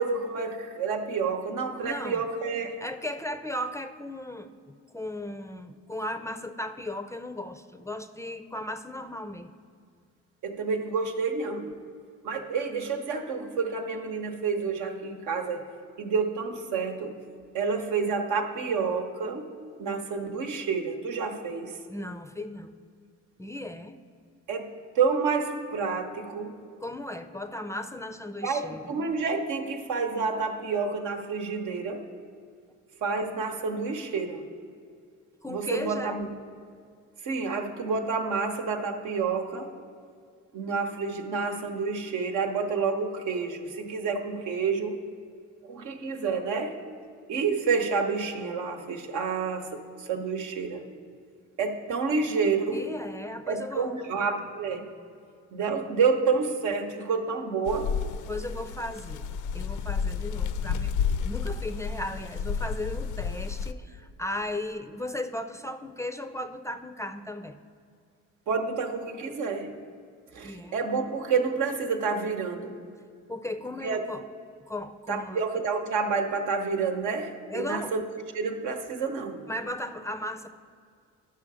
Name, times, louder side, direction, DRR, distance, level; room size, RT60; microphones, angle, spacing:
voice 1, 0.0-2.8 10.4-11.7 12.2-15.6 16.0-17.2 17.5-19.5 19.8-21.8 24.5-26.6 28.4-32.0 33.0-34.5 35.5-36.3 37.2-39.7 40.5-45.0 45.6-46.8 47.3-50.8 51.6-52.9 53.5-54.9 55.5-58.0 68.5-69.7 70.3-72.7 73.8-74.0 75.1-78.0 78.3-79.4, right 5 dB, 85° right, 4 dB, 1.0 m, -29 dB
voice 2, 1.8-2.2 2.8-9.5 21.9-22.8 23.4-24.0 26.8-28.8 35.4-36.2 52.7-53.9 58.3-60.9 61.2-67.6 70.4-70.8 73.3-74.2 74.7-75.4 77.5-77.9 79.5-80.5, left 1 dB, 10° left, 8 dB, 0.4 m, -36 dB
sound 1, 57.7-63.7, left 6 dB, 80° left, 0.5 m, -31 dB
11.0 x 5.8 x 4.8 m, 2.3 s
cardioid pair, 90°, 30 cm